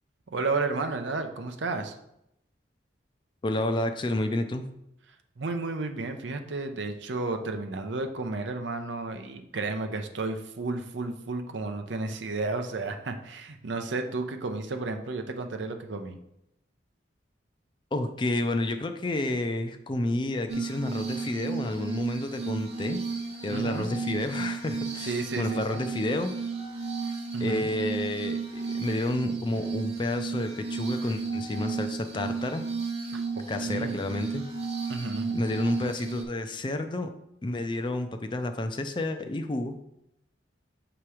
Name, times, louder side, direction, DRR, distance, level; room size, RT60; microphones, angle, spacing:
voice 1, 0.3-2.0 5.4-16.2 23.5-23.9 25.0-25.8 27.3-27.7 33.1-34.0 34.9-35.4, right 3 dB, 75° right, 6 dB, 0.6 m, -32 dB
voice 2, 3.4-4.7 17.9-23.0 23.4-26.3 27.4-32.6 33.5-34.4 35.3-37.1 37.4-39.7, left 2 dB, 25° left, 7 dB, 0.4 m, -30 dB
Glass, 20.5-36.2, right 4 dB, 35° right, 0.8 m, -33 dB
6.9 x 3.0 x 4.8 m, 0.81 s
head